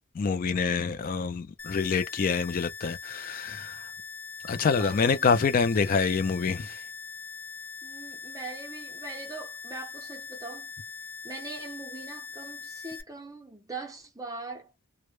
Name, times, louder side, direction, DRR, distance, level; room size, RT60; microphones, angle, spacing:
voice 1, 0.1-3.9 4.4-6.8, left 5 dB, 40° left, 0.3 m, -26 dB
sound 1, 1.6-13.0, left 5 dB, 65° left, 0.8 m, -42 dB
voice 2, 4.8-5.4 7.8-10.7 11.2-14.7, right 3 dB, 15° right, 0.6 m, -41 dB
2.1 x 2.0 x 3.0 m
head